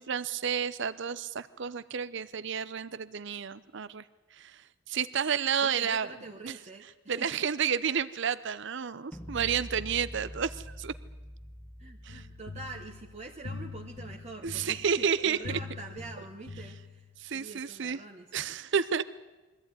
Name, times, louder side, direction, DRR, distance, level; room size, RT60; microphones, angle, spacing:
voice 1, 0.0-4.0 4.3-6.1 6.4-6.5 7.1-10.9 12.0-12.2 14.4-15.6 17.2-18.0 18.3-19.0, right 7 dB, 60° right, 15 dB, 0.6 m, -31 dB
voice 2, 5.6-6.9 7.2-7.4 11.8-17.0 17.3-18.4, right 2 dB, 35° right, 1 dB, 1.4 m, -45 dB
sound 1, 9.1-15.1, equal, 5° left, 0.9 m, -46 dB
sound 2, 12.1-17.3, left 3 dB, 85° left, 1.9 m, -44 dB
23.0 x 14.5 x 9.7 m, 1.2 s
head